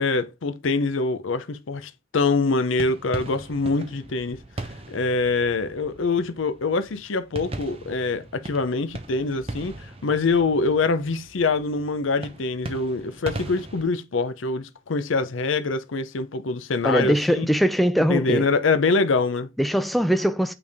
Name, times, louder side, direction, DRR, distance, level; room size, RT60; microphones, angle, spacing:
voice 1, 0.0-17.5 18.1-19.5, left 3 dB, 75° left, 0.6 m, -24 dB
sound 1, 2.6-13.8, right 2 dB, 30° right, 0.8 m, -39 dB
voice 2, 16.8-18.5 19.6-20.5, equal, ahead, 0.3 m, -21 dB
8.6 x 3.5 x 3.5 m
head